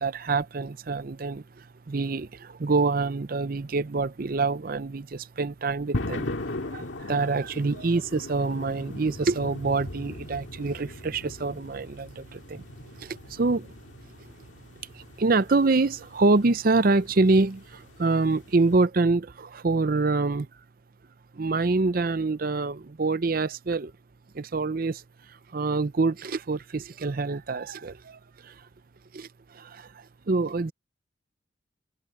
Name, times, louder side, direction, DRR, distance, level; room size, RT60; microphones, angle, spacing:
voice 1, 0.0-6.3 6.7-12.6 13.0-13.7 14.9-20.5 21.3-23.9 24.3-25.0 25.5-28.5 29.1-29.3 29.5-29.9 30.3-30.7, right 3 dB, 45° right, 0.6 m, -26 dB
sound 1, 5.9-18.9, left 1 dB, 75° left, 1.9 m, -39 dB
head